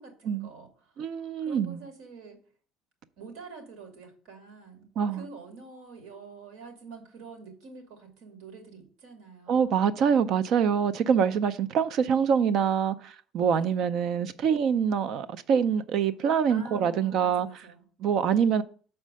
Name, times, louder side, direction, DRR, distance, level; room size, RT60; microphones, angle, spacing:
voice 1, 0.0-2.4 3.2-9.9 13.5-13.8 16.5-17.9, right 4 dB, 65° right, 2.4 m, -47 dB
voice 2, 1.0-1.8 5.0-5.2 9.5-17.5 18.0-18.6, right 7 dB, 40° right, 0.5 m, -25 dB
6.5 x 4.4 x 6.2 m
cardioid pair, 180°, 0 cm